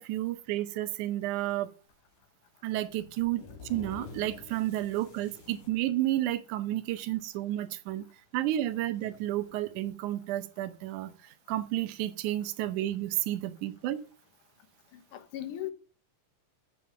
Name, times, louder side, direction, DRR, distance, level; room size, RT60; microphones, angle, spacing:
voice 1, 0.0-1.7 2.6-8.0 8.3-11.1 11.5-14.0, right 14 dB, 80° right, 2.1 m, -31 dB
sound 1, 1.9-2.2 2.8-5.8 6.9-7.0 7.9-8.0 8.5-9.9, left 4 dB, 60° left, 4.6 m, -49 dB
voice 2, 14.9-15.7, left 12 dB, 85° left, 2.5 m, -38 dB
7.4 x 7.2 x 5.7 m
omnidirectional pair, 3.5 m